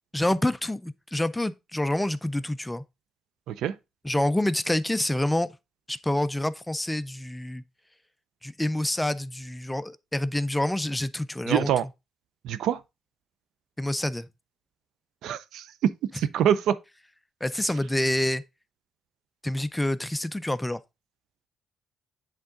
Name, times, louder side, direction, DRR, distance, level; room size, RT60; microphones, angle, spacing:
voice 1, 0.1-2.8 4.0-5.5 5.9-7.6 8.4-11.7 13.8-14.3 17.4-18.4 19.4-20.8, left 1 dB, 10° left, 0.4 m, -27 dB
voice 2, 11.5-11.8 12.4-12.8 15.2-16.8, right 10 dB, 80° right, 0.5 m, -25 dB
8.1 x 3.8 x 3.6 m
cardioid pair, 90°, 0 cm